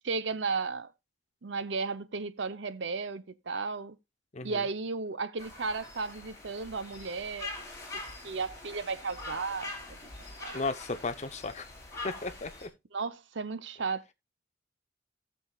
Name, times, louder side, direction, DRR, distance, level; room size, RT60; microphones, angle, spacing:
voice 1, 0.0-0.9 1.4-4.0 4.4-7.5 8.2-10.0 10.4-10.6 12.9-14.0, right 4 dB, 60° right, 0.7 m, -34 dB
sound 1, 5.4-12.7, left 2 dB, 15° left, 3.3 m, -44 dB
voice 2, 10.5-11.7 12.0-12.7, left 3 dB, 35° left, 0.7 m, -35 dB
17.0 x 7.0 x 2.3 m
head